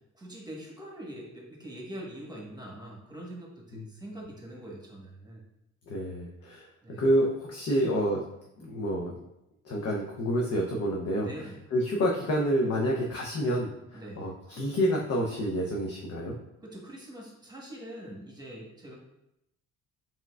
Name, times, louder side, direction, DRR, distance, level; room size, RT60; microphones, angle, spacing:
voice 1, 0.1-5.4 6.8-7.0 11.2-11.6 13.9-14.3 16.6-18.9, right 1 dB, 15° right, -2 dB, 1.2 m, -43 dB
voice 2, 5.9-6.7 7.0-8.2 8.6-9.1 9.6-11.3 11.7-16.4, equal, 55° left, -2 dB, 0.7 m, -28 dB
4.4 x 3.7 x 2.4 m, 0.84 s
cardioid pair, 90°, 30 cm